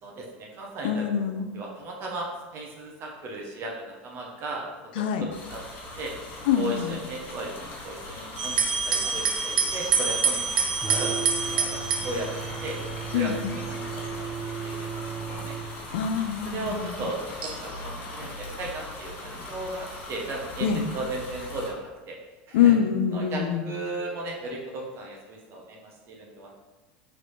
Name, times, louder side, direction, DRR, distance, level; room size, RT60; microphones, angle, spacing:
voice 1, 0.0-1.1 1.5-4.6 5.2-6.1 6.5-10.4 10.9-11.1 11.4-12.8 13.1-13.3 13.7-14.3 14.6-15.0 15.4-15.5 16.5-22.2 22.5-22.7 23.1-26.5, right 2 dB, 50° right, -1 dB, 0.8 m, -36 dB
voice 2, 0.8-1.5 5.0-5.3 6.5-7.0 13.1-13.6 15.9-17.1 20.6-20.9 22.5-23.6, left 8 dB, 80° left, 6 dB, 0.4 m, -25 dB
sound 1, 5.3-21.7, left 2 dB, 45° left, 1.3 m, -40 dB
sound 2, 8.4-13.1 13.9-14.4 15.1-15.2 17.4-17.9, right 5 dB, 90° right, 0.6 m, -27 dB
sound 3, 10.8-15.7, right 7 dB, 20° right, 0.3 m, -35 dB
3.3 x 3.0 x 4.1 m, 1.2 s
supercardioid pair, 105°, 5 cm